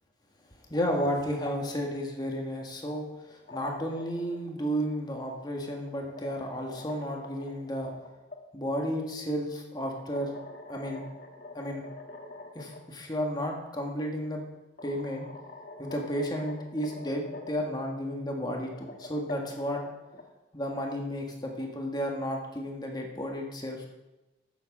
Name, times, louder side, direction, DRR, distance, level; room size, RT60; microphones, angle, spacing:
voice 1, 0.7-7.9 8.5-10.3 10.7-11.0 11.5-11.8 12.5-14.4 14.8-15.3 15.8-19.8 20.5-23.9, equal, 25° left, 1 dB, 1.7 m, -32 dB
sound 1, 3.3-4.4 5.5-8.4 10.0-12.8 13.1-13.2 14.3-14.4 14.8-17.7 18.5-20.2, left 2 dB, 50° left, 1.6 m, -45 dB
13.5 x 7.4 x 5.3 m, 1.0 s
head